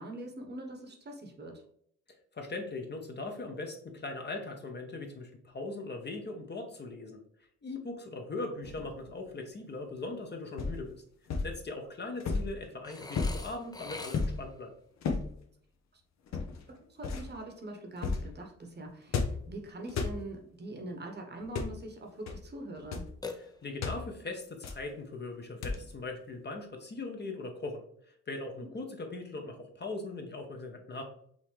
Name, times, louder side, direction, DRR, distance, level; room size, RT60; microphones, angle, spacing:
voice 1, 0.0-1.6 16.7-23.1, right 1 dB, 35° right, 3 dB, 1.1 m, -43 dB
voice 2, 2.3-7.2 7.6-11.0 11.4-14.7 23.3-31.0, left 2 dB, 35° left, 3 dB, 1.1 m, -40 dB
sound 1, 8.6-9.1 10.6-10.8 11.3-11.6 12.2-12.6 13.2-13.5 14.1-14.4 15.0-15.3 16.3-16.6 17.0-17.3 18.0-18.3 19.1-19.5 19.9-20.2 21.4-21.8 22.3-22.4 22.8-23.1 23.8-24.0 24.6-24.9 25.6-26.0, left 4 dB, 60° left, 0.8 m, -33 dB
Burping eructation, 12.8-14.6 23.2-24.0, left 3 dB, 15° left, 0.6 m, -44 dB
5.5 x 2.9 x 3.2 m, 0.66 s
cardioid pair, 90°, 30 cm